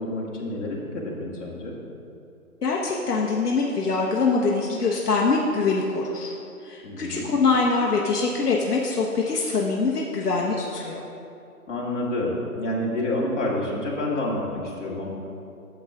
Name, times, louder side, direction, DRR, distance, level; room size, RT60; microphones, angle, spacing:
voice 1, 0.0-1.7 6.8-7.3 11.7-15.1, left 1 dB, 50° left, -4 dB, 2.0 m, -28 dB
voice 2, 2.6-6.3 6.6-11.0, left 4 dB, 85° left, -2 dB, 1.1 m, -24 dB
9.9 x 7.2 x 3.5 m, 2.6 s
hypercardioid pair, 175°, 46 cm